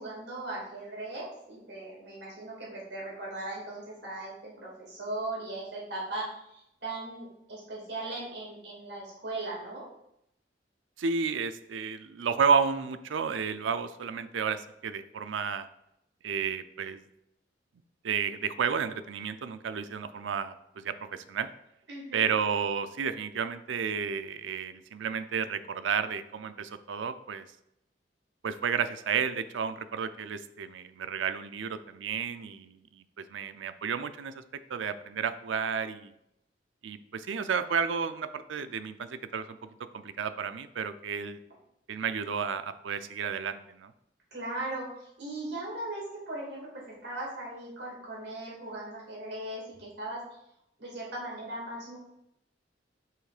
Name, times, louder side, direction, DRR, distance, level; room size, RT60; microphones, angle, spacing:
voice 1, 0.0-9.8 21.9-22.3 44.3-44.9 45.2-50.2 50.8-52.0, right 2 dB, 65° right, -4 dB, 2.4 m, -38 dB
voice 2, 11.0-15.7 16.2-17.0 18.0-21.5 22.1-27.5 28.4-34.4 34.7-36.1 36.8-39.6 39.9-41.4 41.9-43.9, right 6 dB, 85° right, 11 dB, 0.4 m, -32 dB
5.7 x 3.6 x 4.9 m, 0.79 s
head